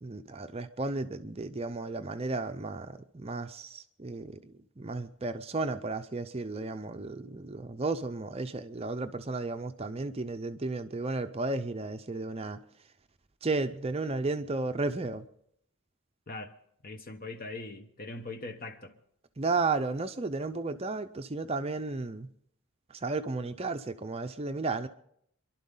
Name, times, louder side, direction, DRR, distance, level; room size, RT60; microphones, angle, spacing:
voice 1, 0.0-12.6 13.4-15.3 19.4-22.3 22.9-24.9, right 3 dB, 25° right, 0.5 m, -33 dB
voice 2, 16.8-19.0, left 2 dB, 40° left, 1.1 m, -41 dB
27.0 x 11.5 x 3.8 m
head